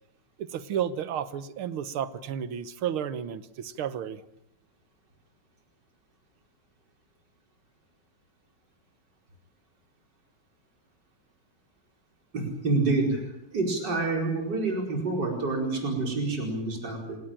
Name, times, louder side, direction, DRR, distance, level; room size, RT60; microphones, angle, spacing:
voice 1, 0.4-4.3, right 9 dB, 75° right, 14 dB, 2.0 m, -32 dB
voice 2, 12.3-13.2 13.5-17.2, right 3 dB, 50° right, 1 dB, 5.6 m, -27 dB
28.5 x 18.0 x 8.9 m, 0.80 s
omnidirectional pair, 2.4 m